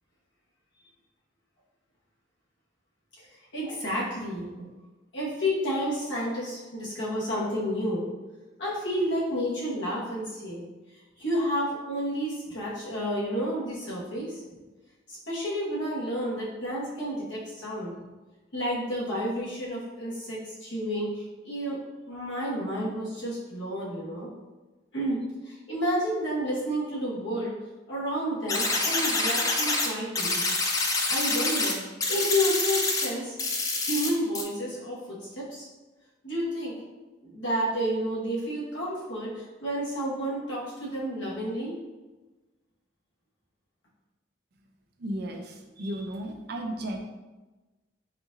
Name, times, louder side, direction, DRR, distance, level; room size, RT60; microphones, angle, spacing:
voice 1, 3.5-4.7 5.1-8.0 8.6-10.6 11.2-14.4 15.1-17.9 18.5-21.8 22.1-24.3 24.9-27.5 27.9-30.4 31.1-31.8 32.1-33.4 33.7-35.7 36.2-36.8 37.2-41.8, equal, 80° left, -7 dB, 1.2 m, -30 dB
sound 1, 28.5-29.9 30.2-31.7 32.0-33.1 33.4-34.1 34.3-34.4, left 3 dB, 20° left, 0.3 m, -26 dB
voice 2, 45.0-47.0, right 1 dB, 60° right, 3 dB, 0.4 m, -34 dB
4.2 x 2.5 x 2.6 m, 1.2 s
head